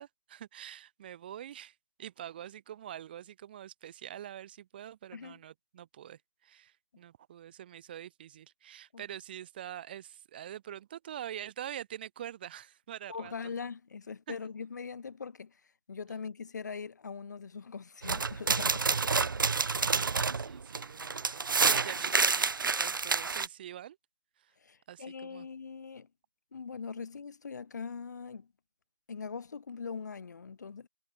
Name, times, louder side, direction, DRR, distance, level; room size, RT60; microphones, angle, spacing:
voice 1, 0.0-13.5 14.3-14.4 20.0-24.0 24.4-24.5 24.9-25.5, right 11 dB, 25° right, 1.4 m, -45 dB
voice 2, 13.1-15.6 15.9-19.0 24.6-26.1 26.5-28.5 29.1-30.9, left 5 dB, 45° left, 3.1 m, -41 dB
sound 1, 18.0-23.5, right 4 dB, 55° right, 1.2 m, -28 dB
figure-of-eight pair, 160°, 13 cm